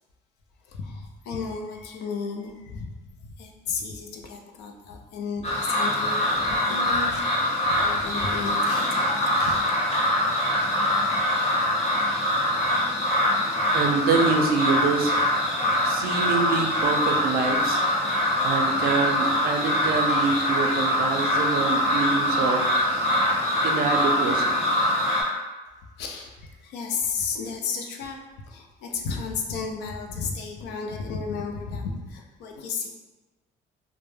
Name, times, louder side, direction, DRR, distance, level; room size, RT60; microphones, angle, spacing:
voice 1, 0.7-2.9 3.2-9.7 26.0-28.2 28.5-32.9, left 5 dB, 85° left, 1 dB, 0.4 m, -33 dB
sound 1, 5.4-25.2, left 1 dB, 35° left, 0.8 m, -23 dB
voice 2, 13.7-15.2 15.8-17.8 18.4-22.6 23.6-24.5, right 4 dB, 60° right, 3 dB, 0.4 m, -25 dB
2.2 x 2.0 x 3.1 m, 1.2 s
cardioid pair, 110°, 17 cm